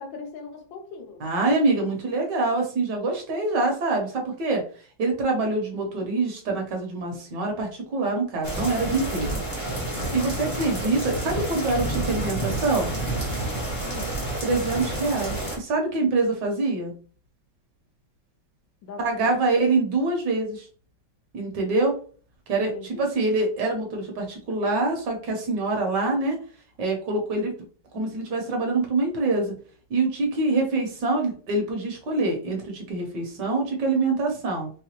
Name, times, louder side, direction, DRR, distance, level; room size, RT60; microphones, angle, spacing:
voice 1, 0.0-1.2 13.8-14.1 18.8-19.3 22.6-23.0, left 4 dB, 75° left, 4 dB, 1.5 m, -40 dB
voice 2, 1.2-4.6 5.0-9.8 10.1-12.9 14.4-16.9 19.0-20.7 21.3-22.0 22.5-26.4 26.8-27.5 27.9-29.5 29.9-34.7, right 3 dB, 65° right, 2 dB, 1.4 m, -25 dB
sound 1, 8.4-15.6, right 1 dB, 25° left, 0.7 m, -29 dB
4.8 x 2.2 x 2.8 m, 0.42 s
omnidirectional pair, 2.1 m